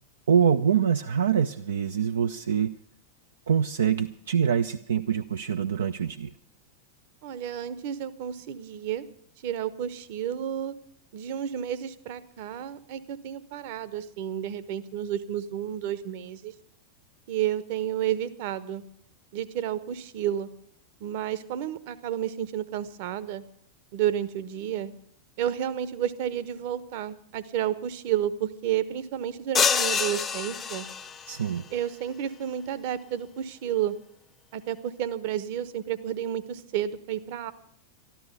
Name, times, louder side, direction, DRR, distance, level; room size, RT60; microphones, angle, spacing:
voice 1, 0.3-2.7 3.5-6.3 31.3-31.7, right 7 dB, 65° right, 8 dB, 0.5 m, -25 dB
voice 2, 7.2-9.1 9.4-10.7 11.1-16.5 17.3-18.8 19.3-20.5 21.0-23.4 23.9-24.9 25.4-30.9 31.7-33.9 34.5-37.5, right 10 dB, 50° right, 13 dB, 1.0 m, -31 dB
sound 1, 29.5-31.3, left 6 dB, 20° left, 0.7 m, -26 dB
13.0 x 12.5 x 6.8 m, 0.67 s
figure-of-eight pair, 90°, 0 cm